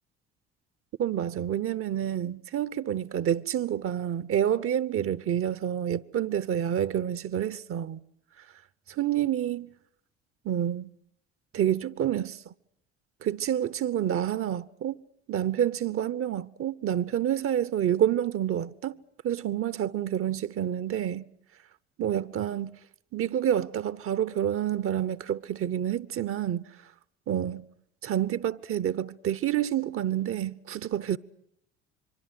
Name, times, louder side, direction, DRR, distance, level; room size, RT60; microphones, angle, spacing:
voice 1, 1.0-8.0 8.9-9.7 10.4-10.9 11.5-12.4 13.2-15.0 15.3-19.0 19.2-21.3 22.0-22.8 23.1-26.6 27.3-27.7 28.0-31.2, right 10 dB, 40° right, 1.0 m, -28 dB
24.5 x 24.5 x 7.7 m
figure-of-eight pair, 60°, 33 cm